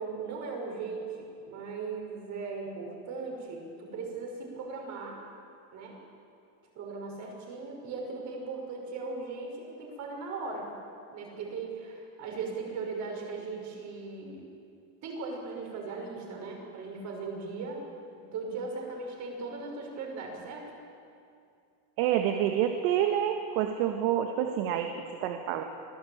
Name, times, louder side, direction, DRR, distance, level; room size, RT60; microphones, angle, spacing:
voice 1, 0.0-5.2 5.7-6.0 6.7-10.7 11.1-14.4 15.0-17.8 18.1-20.7, right 4 dB, 45° right, 0 dB, 5.9 m, -38 dB
voice 2, 22.0-25.6, right 10 dB, 85° right, 5 dB, 1.8 m, -28 dB
25.5 x 17.0 x 8.8 m, 2.5 s
cardioid pair, 170°, 40 cm